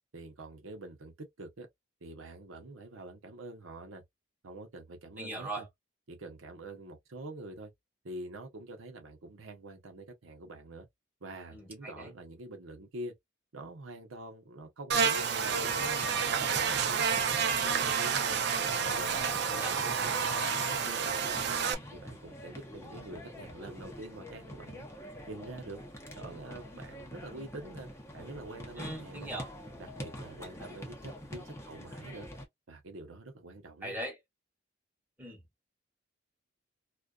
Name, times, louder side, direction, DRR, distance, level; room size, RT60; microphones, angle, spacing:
voice 1, 0.1-1.7 2.0-4.0 4.4-5.7 6.1-7.7 8.0-10.9 11.2-13.1 13.5-18.4 18.8-19.1 19.5-21.6 21.9-24.9 25.3-25.8 26.1-29.3 29.8-32.3 32.7-34.0, right 2 dB, 85° right, 0.8 m, -46 dB
voice 2, 5.2-5.6 11.5-12.1 19.0-19.7 28.8-29.5 33.8-34.2 35.2-35.4, right 1 dB, 10° right, 1.0 m, -40 dB
Buzz, 14.9-21.7, right 6 dB, 55° right, 0.4 m, -29 dB
sound 1, 15.4-32.4, equal, 15° left, 0.6 m, -46 dB
2.4 x 2.2 x 2.3 m
head